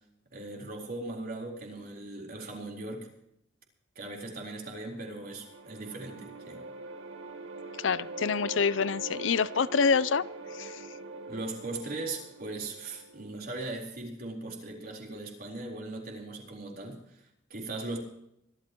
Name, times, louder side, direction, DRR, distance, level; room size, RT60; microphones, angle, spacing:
voice 1, 0.3-3.1 4.0-6.6 11.3-18.0, right 2 dB, 50° right, 4.0 m, -39 dB
sound 1, 4.6-13.7, right 2 dB, 90° right, 2.2 m, -43 dB
voice 2, 7.8-10.3 10.5-10.8, left 5 dB, 75° left, 0.6 m, -26 dB
25.0 x 13.0 x 3.0 m
head